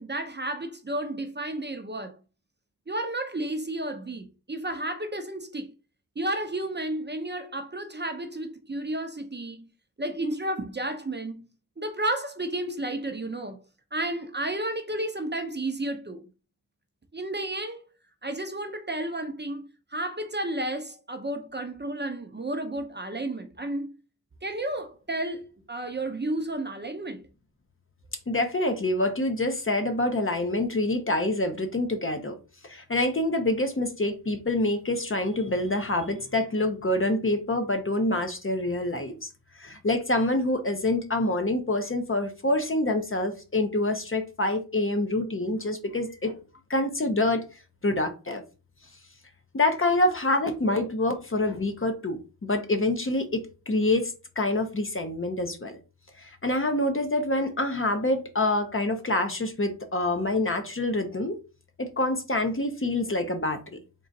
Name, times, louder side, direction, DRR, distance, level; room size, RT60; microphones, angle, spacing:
voice 1, 0.0-2.2 2.9-5.7 6.2-9.7 10.0-11.4 11.8-13.6 13.9-16.2 17.1-17.8 18.2-19.6 19.9-23.9 24.4-27.2, right 1 dB, 30° right, 0.6 m, -32 dB
voice 2, 28.3-32.3 32.6-39.3 39.6-46.4 46.7-47.4 47.8-48.4 49.5-55.8 56.2-61.3 61.8-63.8, left 2 dB, 35° left, 0.7 m, -26 dB
3.8 x 2.4 x 3.9 m
wide cardioid pair, 65°, 38 cm